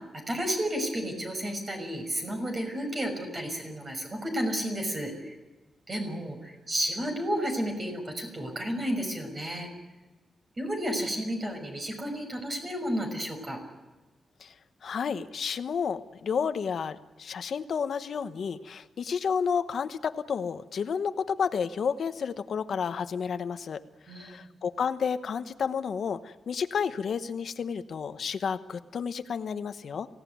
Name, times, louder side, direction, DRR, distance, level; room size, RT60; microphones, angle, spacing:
voice 1, 0.0-5.3 5.9-9.7 10.6-13.6 24.1-24.3, equal, 35° right, 4 dB, 6.2 m, -32 dB
voice 2, 14.8-23.8 24.2-30.1, left 6 dB, 65° left, 10 dB, 1.0 m, -31 dB
24.5 x 17.0 x 9.4 m, 1.2 s
wide cardioid pair, 120°, 0 cm